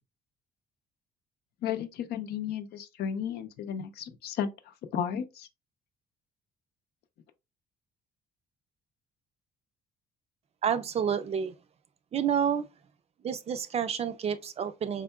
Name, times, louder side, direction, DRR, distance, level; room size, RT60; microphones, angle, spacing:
voice 1, 1.6-5.5, left 8 dB, 70° left, 0.6 m, -34 dB
voice 2, 10.6-11.5 12.1-12.7 13.2-15.0, right 8 dB, 40° right, 0.4 m, -29 dB
4.4 x 3.6 x 2.3 m
cardioid pair, 110°, 17 cm